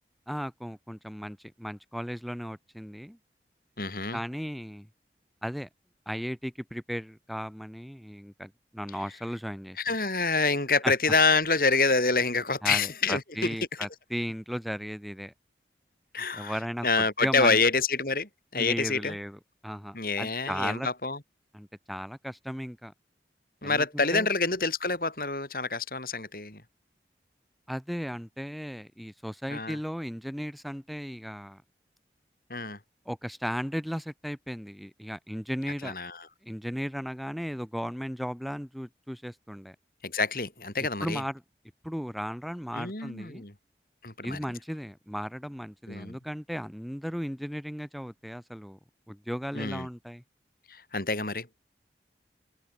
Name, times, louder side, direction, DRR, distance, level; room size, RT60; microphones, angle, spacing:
voice 1, 0.3-3.2 4.1-4.9 5.4-5.7 6.1-9.8 10.8-10.9 12.6-15.3 16.3-17.6 18.5-20.9 21.5-22.9 23.6-24.3 27.7-31.6 33.1-35.9 36.4-39.7 41.0-41.4 41.8-43.4 44.2-48.8 49.1-50.2, equal, ahead, 4.6 m, -36 dB
voice 2, 3.8-4.2 9.8-13.5 16.1-16.6 16.8-19.2 19.9-21.2 23.6-26.6 29.5-29.8 32.5-32.8 35.8-36.3 40.0-41.2 42.7-43.5 44.0-44.4 45.9-46.2 49.5-49.9 50.7-51.5, left 4 dB, 55° left, 4.2 m, -27 dB
head